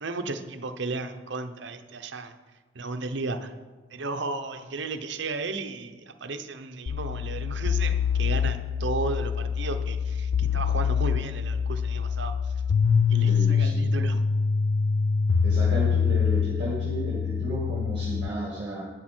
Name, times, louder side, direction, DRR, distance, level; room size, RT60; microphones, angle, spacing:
voice 1, 0.0-2.3 2.7-3.5 3.9-12.5 13.1-14.3, right 3 dB, 55° right, 8 dB, 0.7 m, -34 dB
sound 1, 6.9-18.3, left 6 dB, 80° left, 0.5 m, -25 dB
voice 2, 13.2-14.0 15.4-18.8, right 1 dB, 25° right, -4 dB, 1.9 m, -33 dB
12.0 x 9.1 x 4.4 m, 1.3 s
head